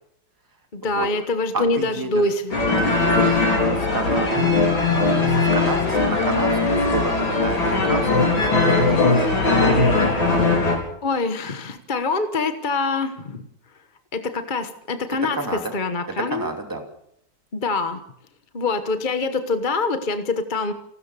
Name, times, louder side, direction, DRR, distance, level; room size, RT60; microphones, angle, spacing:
voice 1, 0.7-2.5 6.3-6.4 11.0-13.4 14.1-15.4 15.7-16.5 17.5-18.0 18.5-20.7, left 3 dB, 30° left, 9 dB, 1.1 m, -25 dB
voice 2, 1.5-2.3 2.8-4.7 5.0-9.9 15.3-15.7 16.3-16.8, right 2 dB, 10° right, 4 dB, 2.6 m, -30 dB
sound 1, 2.5-10.8, left 3 dB, 85° left, 5.6 m, -19 dB
29.5 x 13.5 x 6.9 m, 0.76 s
omnidirectional pair, 2.1 m